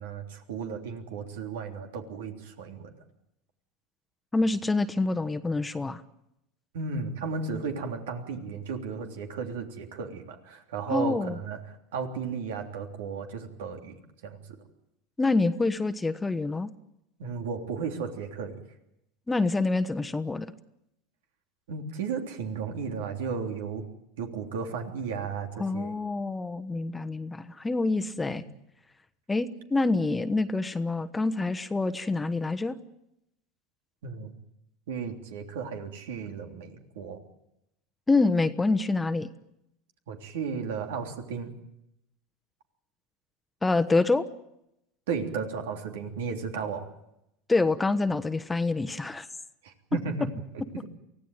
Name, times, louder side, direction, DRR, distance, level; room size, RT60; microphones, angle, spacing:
voice 1, 0.0-2.9 6.7-11.6 11.9-14.4 17.2-18.6 21.7-23.8 24.2-25.9 28.3-28.4 34.0-34.3 34.9-37.2 40.1-41.5 45.1-46.9 49.6-50.3, right 5 dB, 80° right, 4 dB, 3.3 m, -34 dB
voice 2, 4.3-6.0 10.9-11.4 15.2-16.7 19.3-20.5 25.6-28.4 29.3-32.8 38.1-39.3 43.6-44.3 47.5-49.3, left 3 dB, 15° left, 11 dB, 1.2 m, -26 dB
24.5 x 16.0 x 9.2 m, 0.84 s
hypercardioid pair, 100°, 0 cm